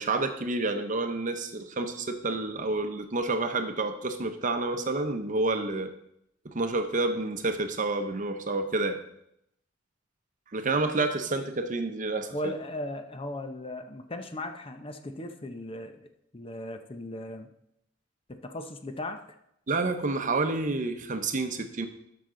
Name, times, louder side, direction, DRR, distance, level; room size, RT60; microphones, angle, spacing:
voice 1, 0.0-5.9 6.4-9.0 10.5-12.5 19.7-21.9, right 3 dB, 45° right, 8 dB, 0.8 m, -29 dB
voice 2, 12.3-17.5 18.3-19.2, left 1 dB, 30° left, 7 dB, 0.7 m, -37 dB
12.5 x 5.9 x 3.8 m, 0.78 s
head